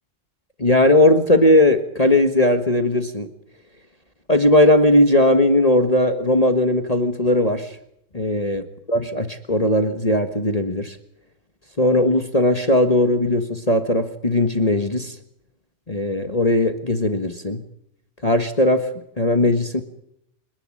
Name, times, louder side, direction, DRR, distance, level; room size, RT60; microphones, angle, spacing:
voice 1, 0.6-3.3 4.3-7.7 8.1-8.6 8.9-11.0 11.8-15.1 15.9-17.6 18.2-18.9 19.2-19.8, left 1 dB, 25° left, 7 dB, 1.5 m, -18 dB
28.0 x 11.5 x 9.8 m, 0.77 s
omnidirectional pair, 1.9 m